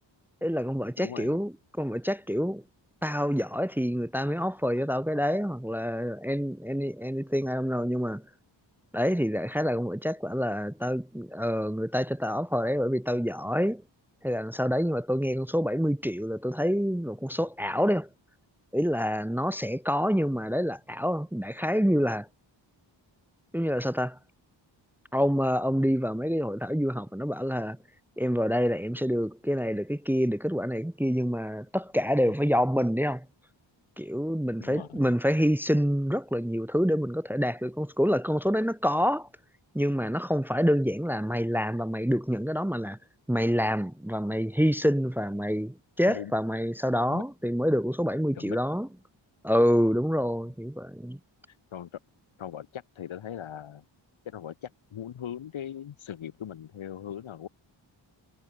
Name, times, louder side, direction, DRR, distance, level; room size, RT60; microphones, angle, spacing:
voice 1, 0.4-2.6 3.0-8.2 8.9-13.8 14.2-18.1 18.7-22.3 23.5-24.2 25.1-27.8 28.2-33.3 34.0-39.3 39.7-43.0 43.3-48.9 49.4-51.2, equal, 5° right, 0.8 m, -27 dB
voice 2, 1.0-1.4 34.6-35.1 46.1-46.3 47.1-47.2 48.3-48.6 50.2-50.3 51.7-51.9 52.4-53.8 54.3-57.5, left 9 dB, 90° left, 2.3 m, -39 dB
cardioid pair, 85°, 46 cm